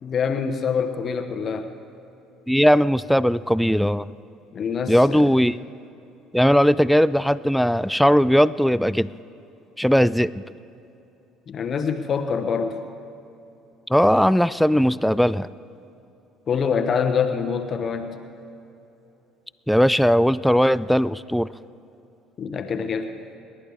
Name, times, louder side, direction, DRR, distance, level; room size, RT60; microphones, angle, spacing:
voice 1, 0.0-1.7 4.5-5.3 11.5-12.8 16.5-18.2 22.4-23.1, left 6 dB, 45° left, 7 dB, 1.1 m, -25 dB
voice 2, 2.5-4.1 4.9-5.6 6.3-9.1 9.8-10.3 13.9-15.5 19.7-21.5, equal, ahead, 17 dB, 0.4 m, -18 dB
30.0 x 11.0 x 3.6 m, 2.8 s
hypercardioid pair, 55°, 0 cm